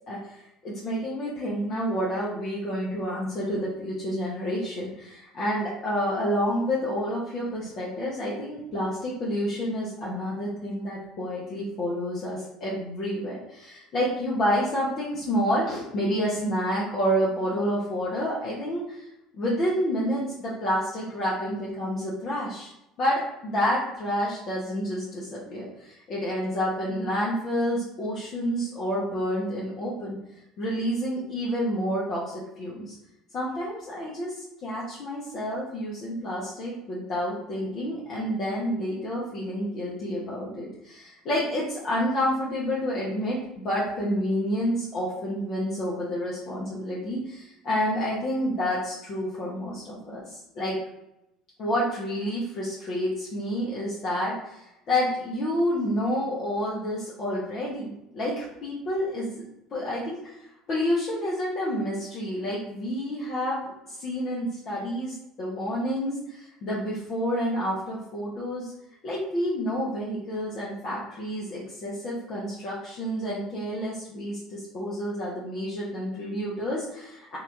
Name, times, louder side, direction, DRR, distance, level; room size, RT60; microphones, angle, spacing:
voice 1, 0.1-19.0 19.3-22.7 23.0-30.2 30.6-32.9 33.3-50.8 51.6-59.4 59.7-60.4 60.7-68.7 69.0-77.4, equal, 45° left, -6 dB, 1.0 m, -29 dB
3.9 x 2.8 x 3.5 m, 0.88 s
figure-of-eight pair, 60°, 0 cm